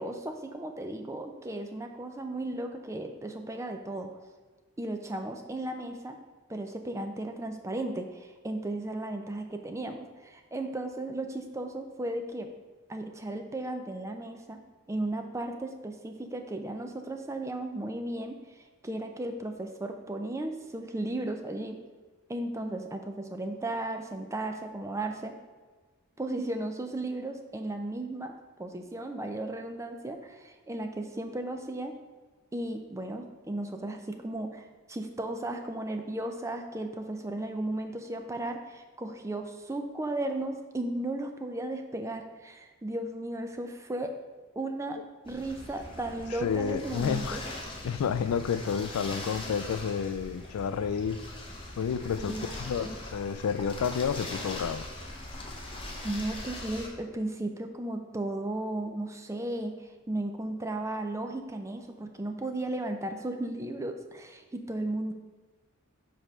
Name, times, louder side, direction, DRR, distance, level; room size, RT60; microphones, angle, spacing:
voice 1, 0.0-4.1 4.8-6.2 6.5-12.5 12.9-14.6 14.9-21.8 22.3-25.4 26.2-31.9 32.5-44.1 44.6-45.0 45.3-47.4 52.2-53.0 55.7-65.1, right 1 dB, 15° right, 5 dB, 0.4 m, -35 dB
sound 1, 45.3-56.9, left 1 dB, 25° left, 0.8 m, -41 dB
voice 2, 46.4-47.4 47.8-51.2 51.8-54.9, left 7 dB, 80° left, 14 dB, 0.3 m, -30 dB
5.2 x 4.2 x 6.1 m, 1.3 s
head